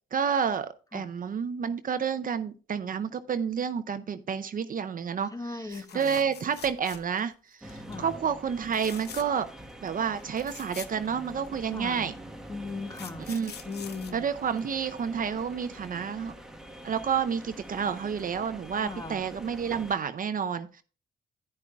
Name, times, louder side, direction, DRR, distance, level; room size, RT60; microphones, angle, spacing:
voice 1, 0.1-9.5 9.8-12.1 13.3-13.5 14.1-16.3 16.8-20.8, right 7 dB, 45° right, 0.6 m, -30 dB
voice 2, 5.3-6.2 7.9-8.2 11.7-12.1 12.5-13.3 13.6-14.3 18.8-19.2, left 3 dB, 20° left, 1.1 m, -38 dB
sound 1, 5.7-7.3 7.7-8.0 8.7-9.5 9.9-10.0 10.2-11.7 12.5-15.0 16.9-17.1 17.4-17.5, left 8 dB, 60° left, 0.8 m, -45 dB
sound 2, 7.6-19.9, right 1 dB, 5° right, 1.2 m, -45 dB
10.5 x 9.8 x 2.3 m
supercardioid pair, 65°, 19 cm